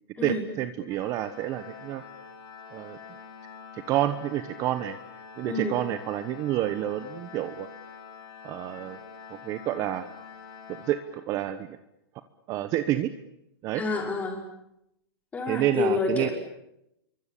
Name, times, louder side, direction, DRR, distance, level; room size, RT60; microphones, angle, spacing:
voice 1, 0.2-2.0 2.7-3.0 3.7-5.0 5.4-7.7 8.4-9.0 9.3-10.1 10.8-11.8 12.5-13.1 13.6-13.8 15.5-16.3, right 13 dB, 25° right, 12 dB, 1.2 m, -29 dB
Organ, 0.9-11.6, left 6 dB, 30° left, 6.9 m, -46 dB
voice 2, 5.4-5.8 13.7-14.4 15.3-16.3, left 4 dB, 10° left, 2 dB, 5.7 m, -28 dB
27.5 x 24.0 x 8.5 m, 0.81 s
supercardioid pair, 160°, 13 cm